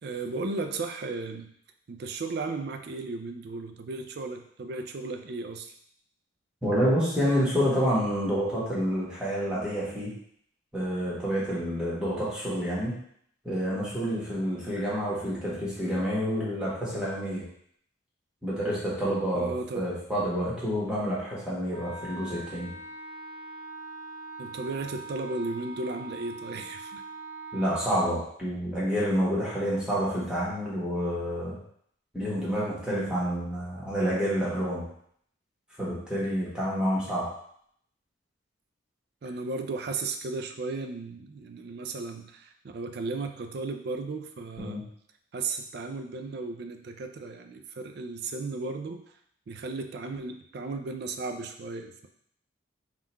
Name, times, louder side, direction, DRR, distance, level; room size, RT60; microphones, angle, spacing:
voice 1, 0.0-1.5 1.9-5.7 19.3-19.9 24.4-27.0 39.2-44.8 45.3-49.2 49.5-52.1, right 3 dB, 50° right, 7 dB, 0.4 m, -35 dB
voice 2, 6.6-10.1 10.7-13.0 13.4-17.4 18.4-22.7 27.5-31.6 32.1-34.8 35.8-37.3 44.6-44.8, equal, 5° right, -8 dB, 1.2 m, -28 dB
Wind instrument woodwind instrument, 21.7-28.1, right 3 dB, 80° right, 0.7 m, -42 dB
3.7 x 2.4 x 4.3 m, 0.67 s
head